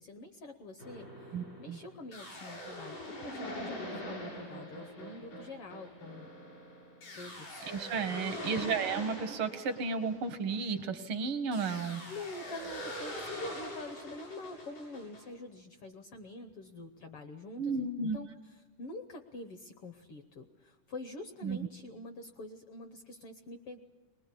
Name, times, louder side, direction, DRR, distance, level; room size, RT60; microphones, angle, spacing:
voice 1, 0.0-6.3 7.1-7.7 8.1-8.4 11.9-23.8, left 2 dB, 70° left, 7 dB, 1.4 m, -46 dB
sound 1, 0.8-10.9 11.5-15.2, equal, 85° left, 9.0 m, -43 dB
voice 2, 1.3-1.8 7.7-12.0 17.6-18.2 21.4-21.6, right 5 dB, 75° right, 8 dB, 1.2 m, -33 dB
22.0 x 20.0 x 8.4 m, 1.2 s
omnidirectional pair, 3.6 m